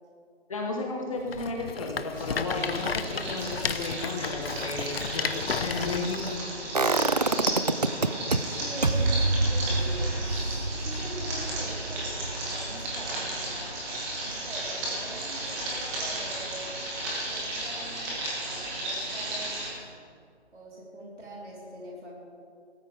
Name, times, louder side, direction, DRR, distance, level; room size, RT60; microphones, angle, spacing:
voice 1, 0.5-6.4, left 3 dB, 30° left, 0 dB, 1.3 m, -33 dB
Rattle, 1.3-6.4, left 5 dB, 60° left, 0.8 m, -33 dB
sound 1, 2.1-19.7, right 1 dB, 10° right, 1.6 m, -34 dB
sound 2, 6.7-8.4 8.8-14.7 15.0-15.1, right 3 dB, 40° right, 0.4 m, -27 dB
voice 2, 8.1-13.8 14.2-16.7 17.2-18.2 18.4-19.6 20.5-22.2, right 1 dB, 85° right, -5 dB, 4.0 m, -43 dB
18.5 x 13.5 x 3.5 m, 2.3 s
figure-of-eight pair, 165°, 34 cm